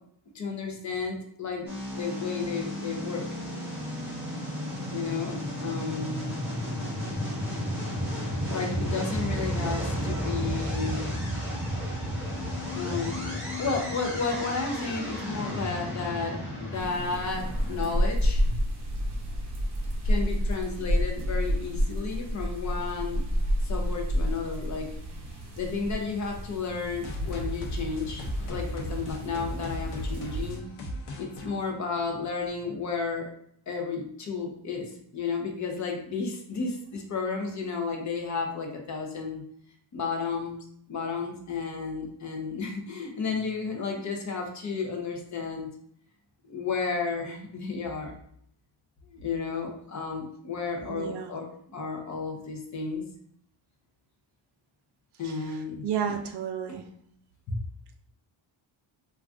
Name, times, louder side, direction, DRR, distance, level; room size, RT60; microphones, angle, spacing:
voice 1, 0.3-3.3 4.9-6.3 8.5-11.1 12.7-18.4 20.0-23.2 23.6-24.9 25.6-30.6 31.2-33.3 33.7-39.4 39.9-40.6 40.9-45.7 46.4-48.1 49.1-53.0 55.2-56.2 57.5-57.6, left 4 dB, 35° left, 2 dB, 0.5 m, -32 dB
sound 1, 1.7-18.0, equal, 5° right, 1.0 m, -33 dB
sound 2, 16.7-30.6, equal, 35° right, 0.8 m, -30 dB
sound 3, 27.0-32.5, equal, 85° left, 0.7 m, -36 dB
voice 2, 50.8-51.4 55.2-56.9, right 8 dB, 55° right, 5 dB, 0.5 m, -33 dB
2.5 x 2.3 x 3.4 m, 0.65 s
cardioid pair, 165°, 49 cm